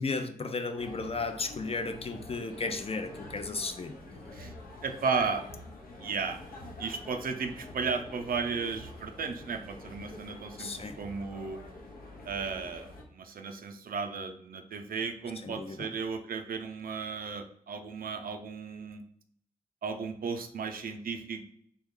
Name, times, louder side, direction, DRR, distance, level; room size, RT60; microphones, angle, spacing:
voice 1, 0.0-4.0 10.6-11.0 15.4-15.8, left 3 dB, 40° left, 8 dB, 0.4 m, -34 dB
sound 1, 0.8-13.0, left 2 dB, 90° left, 0.7 m, -47 dB
voice 2, 4.8-5.5 6.0-6.4 6.8-11.6 12.2-19.0 19.8-21.4, right 5 dB, 80° right, 6 dB, 0.4 m, -35 dB
3.1 x 2.3 x 3.5 m, 0.69 s
cardioid pair, 55°, 15 cm